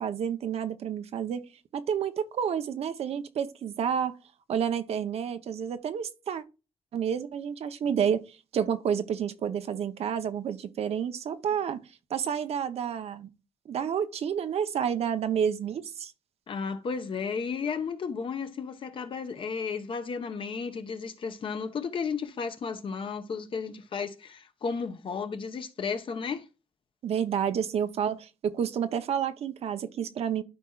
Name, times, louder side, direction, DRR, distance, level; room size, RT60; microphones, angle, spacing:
voice 1, 0.0-1.4 1.7-4.2 4.5-6.4 6.9-8.2 8.5-11.8 12.1-13.3 13.7-16.1 27.0-30.4, right 8 dB, 80° right, 0.8 m, -29 dB
voice 2, 16.5-26.4, left 5 dB, 55° left, 1.0 m, -33 dB
12.5 x 4.5 x 2.4 m
wide cardioid pair, 120°, 10 cm